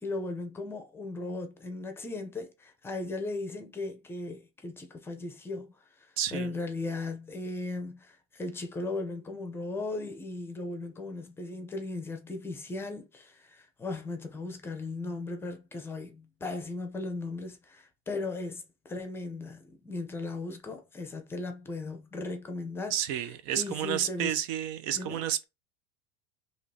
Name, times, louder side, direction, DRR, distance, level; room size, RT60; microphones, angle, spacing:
voice 1, 0.0-5.7 6.0-23.3 23.5-24.4 24.9-25.2, left 2 dB, 15° left, 0.7 m, -37 dB
voice 2, 6.2-6.5 22.9-25.4, right 10 dB, 60° right, 0.6 m, -31 dB
4.9 x 3.0 x 2.8 m
supercardioid pair, 145°, 17 cm